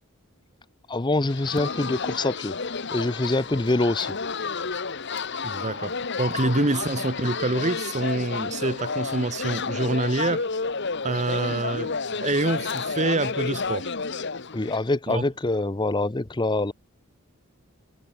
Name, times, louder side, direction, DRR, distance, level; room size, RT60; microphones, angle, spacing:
voice 1, 0.9-2.5 2.9-4.1 14.5-16.7, left 2 dB, 20° left, 0.6 m, -25 dB
sound 1, 1.3-14.9, left 4 dB, 55° left, 1.3 m, -31 dB
voice 2, 5.4-10.5 11.0-13.9 15.1-15.2, right 2 dB, 35° right, 1.0 m, -26 dB
head